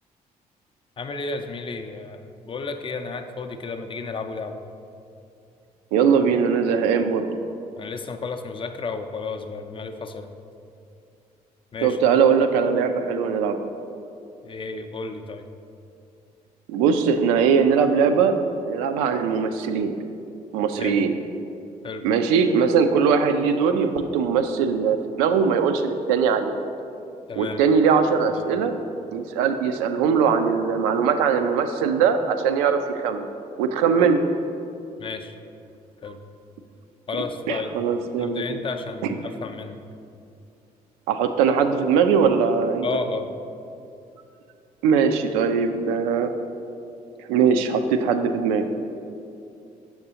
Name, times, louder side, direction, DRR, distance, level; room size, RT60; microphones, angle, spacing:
voice 1, 1.0-4.6 7.8-10.3 11.7-12.0 14.4-15.5 20.8-21.0 21.8-22.0 27.3-27.6 28.4-28.5 35.0-35.3 36.0-36.2 37.1-37.8 38.2-39.8 42.8-43.3, left 4 dB, 25° left, 6 dB, 0.4 m, -32 dB
voice 2, 5.9-7.4 11.8-13.6 16.7-19.9 20.5-21.1 22.0-26.5 27.4-28.8 29.1-33.3 33.6-34.2 37.5-38.6 39.0-39.1 41.1-42.9 44.8-46.3 47.2-48.6, right 6 dB, 65° right, 7 dB, 0.4 m, -21 dB
6.6 x 5.8 x 2.7 m, 2.6 s
figure-of-eight pair, 45°, 20 cm